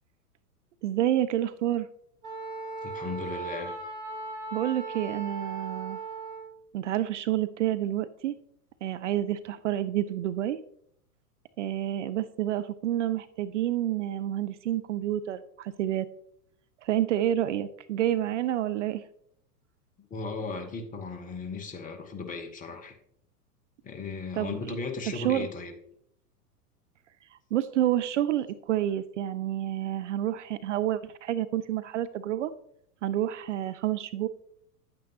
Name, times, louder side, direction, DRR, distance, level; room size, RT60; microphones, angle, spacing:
voice 1, 0.8-1.9 4.5-6.0 6.7-8.4 8.8-10.6 11.6-16.1 16.8-19.1 24.3-24.8 25.1-25.5 27.3-32.5 33.0-34.3, right 12 dB, 50° right, 13 dB, 0.5 m, -29 dB
Wind instrument woodwind instrument, 2.2-6.5, right 4 dB, 75° right, 2.7 m, -37 dB
voice 2, 2.8-3.7 20.1-22.9 23.8-25.7, left 4 dB, 15° left, 6 dB, 0.9 m, -36 dB
8.8 x 8.7 x 2.8 m, 0.70 s
figure-of-eight pair, 95°, 47 cm